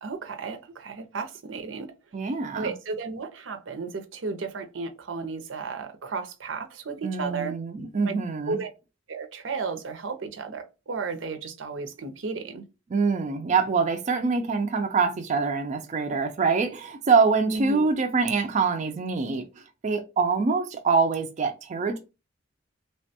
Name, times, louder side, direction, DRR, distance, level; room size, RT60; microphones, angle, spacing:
voice 1, 0.0-1.9 2.5-7.5 8.0-8.2 8.5-8.7 9.1-12.6 17.5-17.9, right 4 dB, 85° right, 0.6 m, -33 dB
voice 2, 2.1-2.7 7.0-8.6 12.9-19.5 19.8-22.0, right 4 dB, 40° right, 0.3 m, -25 dB
3.2 x 2.2 x 2.7 m
head